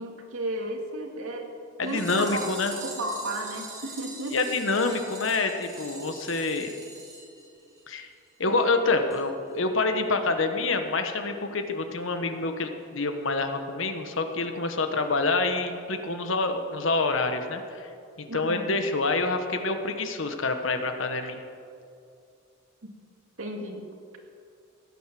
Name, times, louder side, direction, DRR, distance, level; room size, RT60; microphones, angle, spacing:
voice 1, 0.0-1.5 1.8-2.4 2.7-4.4 18.3-18.8 22.8-22.9 23.4-23.8, right 1 dB, 80° right, 2 dB, 2.3 m, -34 dB
voice 2, 1.8-2.8 4.3-6.7 7.9-8.1 8.4-17.9 18.2-21.4, left 3 dB, 65° left, 6 dB, 1.3 m, -27 dB
sound 1, 1.8-8.0 8.3-8.4 8.6-8.7 9.1-9.2 9.5-9.6, right 3 dB, 15° right, 3.0 m, -43 dB
16.0 x 9.6 x 7.6 m, 2.5 s
head